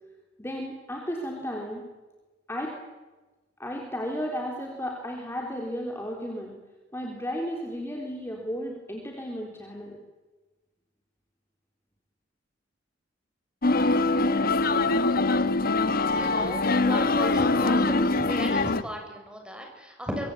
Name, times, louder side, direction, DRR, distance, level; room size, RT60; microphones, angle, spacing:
voice 1, 0.4-1.8 2.5-2.7 3.6-6.5 6.9-10.0, equal, 15° left, 0 dB, 3.8 m, -34 dB
sound 1, 13.6-18.8, left 3 dB, 50° left, 1.2 m, -23 dB
voice 2, 16.1-17.7 18.1-20.3, equal, 5° right, 2 dB, 6.8 m, -36 dB
25.0 x 24.5 x 8.6 m, 1.2 s
head